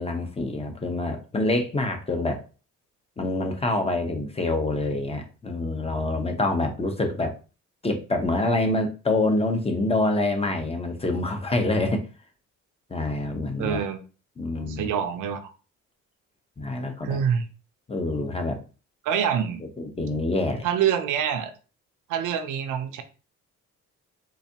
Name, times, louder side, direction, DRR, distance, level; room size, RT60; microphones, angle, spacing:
voice 1, 0.0-2.4 3.2-7.3 7.8-12.0 12.9-13.8 14.4-14.9 16.6-17.2 17.9-18.6 19.8-20.7, left 2 dB, 20° left, 5 dB, 0.8 m, -26 dB
voice 2, 13.6-14.0 14.7-15.5 17.0-17.4 19.0-19.6 20.6-21.5 22.1-23.0, right 8 dB, 85° right, 8 dB, 0.6 m, -26 dB
4.0 x 2.6 x 2.8 m, 0.35 s
cardioid pair, 90°, 30 cm